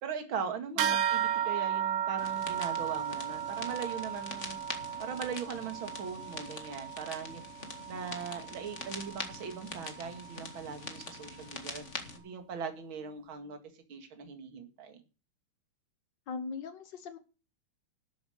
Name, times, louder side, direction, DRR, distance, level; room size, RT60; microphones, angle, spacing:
voice 1, 0.0-4.6 5.0-7.4 7.9-11.8 12.1-13.6 13.9-15.0, right 6 dB, 40° right, 2.6 m, -40 dB
sound 1, 0.8-10.6, right 9 dB, 75° right, 1.2 m, -35 dB
sound 2, 2.2-12.2, left 3 dB, 30° left, 1.5 m, -44 dB
voice 2, 16.3-17.2, left 4 dB, 70° left, 1.0 m, -40 dB
12.5 x 7.6 x 6.5 m
omnidirectional pair, 3.8 m